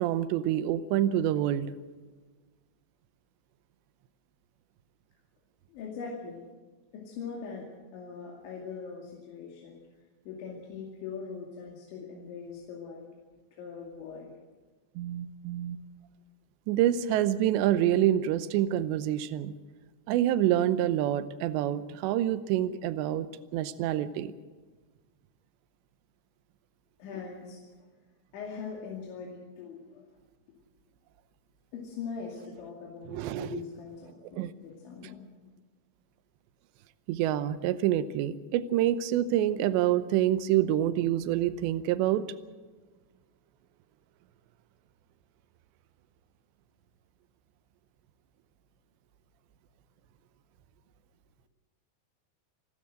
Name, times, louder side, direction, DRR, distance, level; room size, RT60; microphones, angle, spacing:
voice 1, 0.0-1.7 15.0-15.8 16.7-19.5 20.1-23.3 23.5-24.3 33.1-33.6 34.3-34.5 37.1-42.2, right 12 dB, 80° right, 13 dB, 3.0 m, -27 dB
voice 2, 5.7-6.4 6.9-7.7 7.9-9.8 10.3-13.1 13.6-14.3 27.0-27.6 28.3-30.0 31.7-35.2, left 5 dB, 80° left, -2 dB, 4.8 m, -41 dB
28.5 x 12.5 x 7.8 m, 1.3 s
omnidirectional pair, 5.3 m